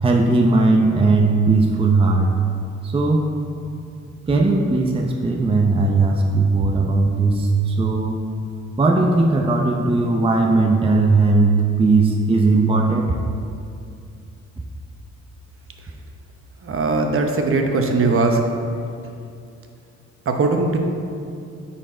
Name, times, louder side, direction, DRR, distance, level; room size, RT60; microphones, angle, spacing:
voice 1, 0.0-2.3 2.8-3.4 4.3-8.2 8.8-13.1, right 3 dB, 20° right, 1 dB, 0.6 m, -18 dB
voice 2, 16.6-18.4 20.3-20.8, right 3 dB, 45° right, 3 dB, 0.9 m, -19 dB
8.8 x 4.4 x 4.4 m, 2.5 s
cardioid pair, 90°, 30 cm